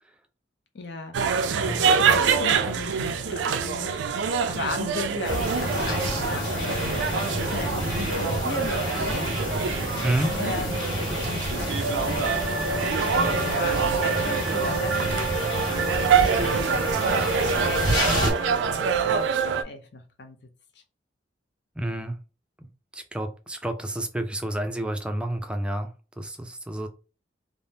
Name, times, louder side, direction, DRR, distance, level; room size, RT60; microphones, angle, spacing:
voice 1, 0.7-9.3 10.4-16.7 17.5-20.4, left 3 dB, 65° left, 0.5 m, -37 dB
sound 1, 1.1-19.6, right 6 dB, 90° right, 0.3 m, -25 dB
sound 2, 5.2-18.3, equal, 20° left, 1.3 m, -29 dB
voice 2, 10.0-10.3 21.8-22.2 22.9-25.9 26.2-26.9, right 1 dB, 5° right, 0.4 m, -29 dB
3.3 x 2.0 x 2.7 m
head